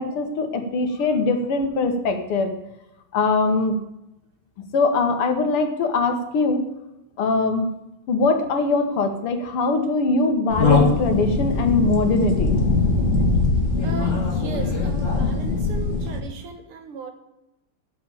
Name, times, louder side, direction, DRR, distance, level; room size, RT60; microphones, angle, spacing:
voice 1, 0.0-2.5 3.1-3.7 4.7-6.6 7.2-7.7 8.1-12.6, left 3 dB, 80° left, 6 dB, 2.3 m, -22 dB
sound 1, 10.5-16.2, left 3 dB, 35° left, 2.1 m, -21 dB
voice 2, 13.8-17.1, right 5 dB, 80° right, 6 dB, 2.4 m, -36 dB
7.8 x 7.5 x 8.7 m, 0.90 s
omnidirectional pair, 2.4 m